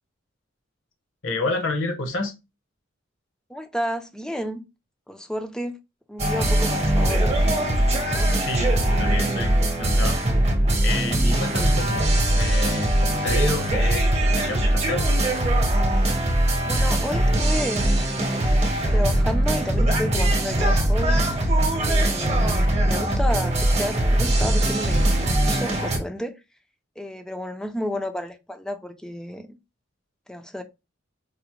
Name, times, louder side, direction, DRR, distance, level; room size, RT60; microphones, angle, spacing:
voice 1, 1.2-2.3 8.4-10.2 10.8-15.1, left 2 dB, 65° left, 1.0 m, -29 dB
voice 2, 3.5-4.6 5.1-5.8 6.1-7.4 8.1-8.4 16.6-18.5 18.9-21.3 21.8-26.3 27.0-29.6 30.3-30.6, left 1 dB, 5° left, 0.4 m, -31 dB
sound 1, 6.2-26.0, right 1 dB, 35° right, 0.8 m, -21 dB
4.7 x 2.1 x 3.0 m
head